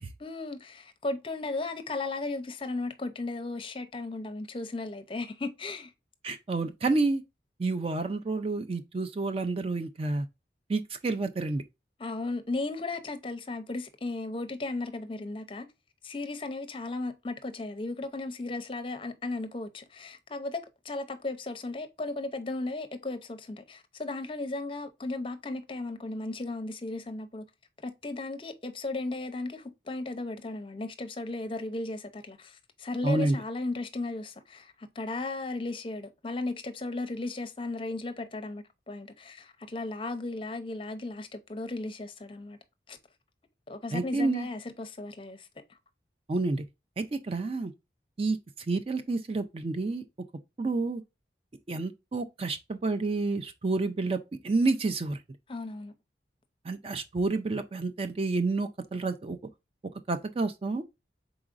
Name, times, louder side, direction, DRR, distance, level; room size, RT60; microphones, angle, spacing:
voice 1, 0.2-5.9 12.0-15.7 16.0-27.5 27.8-42.6 42.9-43.0 43.7-45.5 55.5-55.9, left 2 dB, 30° left, 0.6 m, -35 dB
voice 2, 6.2-7.2 7.6-10.3 10.7-11.6 33.0-33.4 43.9-44.5 46.3-46.6 47.0-47.7 48.2-48.4 48.7-50.0 50.6-51.0 51.7-55.2 56.6-59.4 60.1-60.8, right 3 dB, 35° right, 0.4 m, -29 dB
4.8 x 3.9 x 2.4 m
head